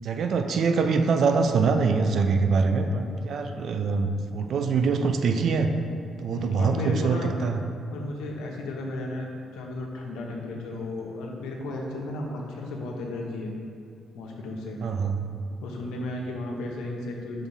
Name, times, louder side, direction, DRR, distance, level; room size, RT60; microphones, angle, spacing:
voice 1, 0.0-5.7 6.2-7.6 14.8-15.3, right 4 dB, 65° right, 7 dB, 0.5 m, -24 dB
voice 2, 6.3-7.4 7.9-13.5 14.1-14.8 15.6-17.5, left 2 dB, 90° left, 0 dB, 0.9 m, -34 dB
5.6 x 3.5 x 5.6 m, 2.6 s
cardioid pair, 90°, 0 cm